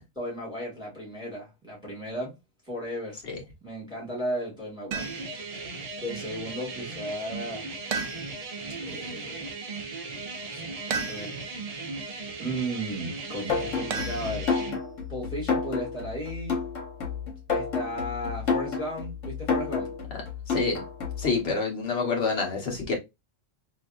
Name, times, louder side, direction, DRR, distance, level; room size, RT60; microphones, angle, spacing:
voice 1, 0.2-2.4 2.7-3.2 3.6-5.2 6.0-7.7 8.8-9.6 10.2-11.4 12.4-14.5 15.1-16.6 17.5-19.9 21.2-21.5 21.9-22.1, equal, 5° right, 1.9 m, -35 dB
sound 1, 4.9-5.4 7.9-8.6 10.9-11.6 13.9-14.8, right 5 dB, 70° right, 1.0 m, -34 dB
sound 2, 5.0-14.8, right 3 dB, 45° right, 0.5 m, -37 dB
sound 3, 13.5-21.3, left 5 dB, 70° left, 1.5 m, -30 dB
voice 2, 20.5-20.8 21.2-22.9, left 4 dB, 50° left, 1.3 m, -27 dB
3.3 x 2.7 x 2.5 m
omnidirectional pair, 1.4 m